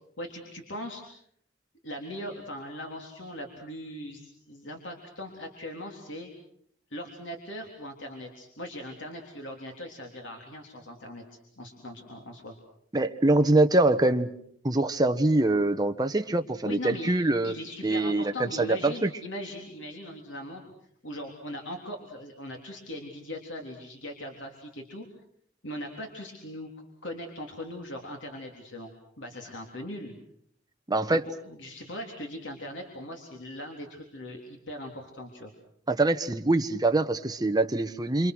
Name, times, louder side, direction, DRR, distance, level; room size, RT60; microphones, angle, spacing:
voice 1, 0.2-1.0 1.8-6.3 6.9-11.2 11.6-12.6 16.6-17.1 17.4-20.7 21.0-25.1 25.6-26.7 27.0-28.9 29.2-30.2 31.5-35.5, left 1 dB, 75° left, 2 dB, 3.5 m, -40 dB
voice 2, 12.9-14.3 14.6-17.5 17.8-19.1 30.9-31.2 35.9-38.3, right 2 dB, 20° right, 6 dB, 1.2 m, -24 dB
27.5 x 27.0 x 6.3 m, 0.67 s
head